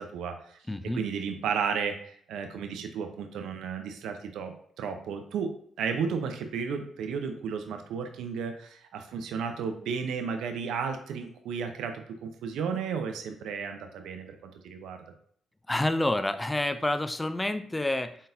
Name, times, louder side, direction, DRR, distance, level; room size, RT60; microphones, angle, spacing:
voice 1, 0.0-0.6 0.9-15.0, right 6 dB, 80° right, 6 dB, 0.5 m, -33 dB
voice 2, 0.7-1.0 15.7-18.2, left 1 dB, 15° left, 11 dB, 0.3 m, -28 dB
4.1 x 3.9 x 2.5 m, 0.62 s
cardioid pair, 90°, 0 cm